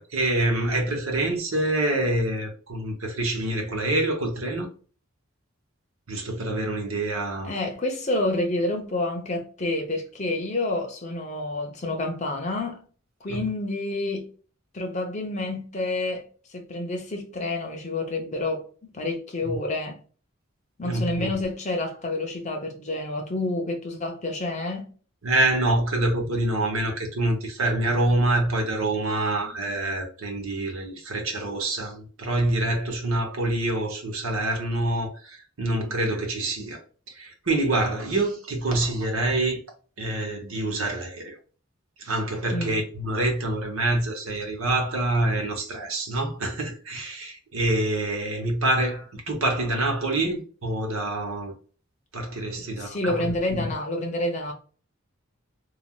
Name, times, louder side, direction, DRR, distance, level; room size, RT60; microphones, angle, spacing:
voice 1, 0.0-4.7 6.1-7.5 13.3-13.4 19.4-19.6 20.8-21.5 25.2-36.8 37.1-39.6 40.0-41.4 42.0-51.5 52.1-53.6, right 2 dB, 85° right, 1.0 m, -26 dB
voice 2, 7.5-12.8 13.2-14.3 14.7-16.3 16.5-20.0 20.8-24.9 42.5-42.8 52.6-54.5, left 2 dB, 35° left, 0.7 m, -29 dB
3.3 x 2.3 x 2.3 m
head